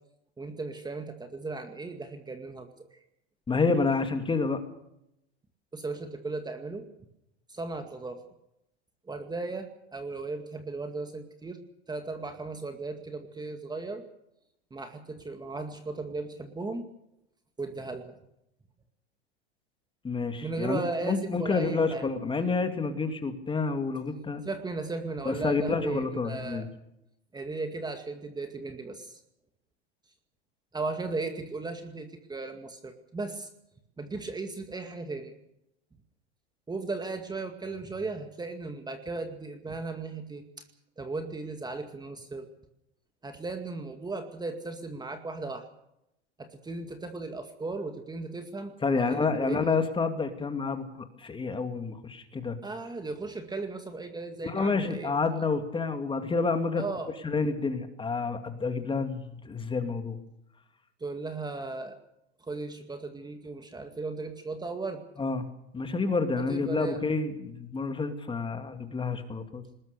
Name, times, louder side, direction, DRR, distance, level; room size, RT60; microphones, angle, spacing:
voice 1, 0.4-2.7 5.7-6.9 7.5-8.2 9.1-11.6 11.9-14.0 14.7-16.8 17.6-18.2 20.4-22.1 24.5-26.7 27.3-29.2 30.7-33.5 34.0-35.3 36.7-40.4 41.0-42.5 43.2-45.7 46.4-49.8 52.6-55.2 56.8-57.1 61.0-62.0 62.4-65.0 66.4-67.0, right 3 dB, 10° right, 6 dB, 2.1 m, -36 dB
voice 2, 3.5-4.6 20.0-24.4 25.2-26.7 48.8-52.6 54.4-56.8 57.2-60.2 65.2-65.4 65.7-69.6, left 4 dB, 15° left, 7 dB, 2.5 m, -29 dB
22.5 x 20.0 x 6.7 m, 0.81 s
hypercardioid pair, 110°, 33 cm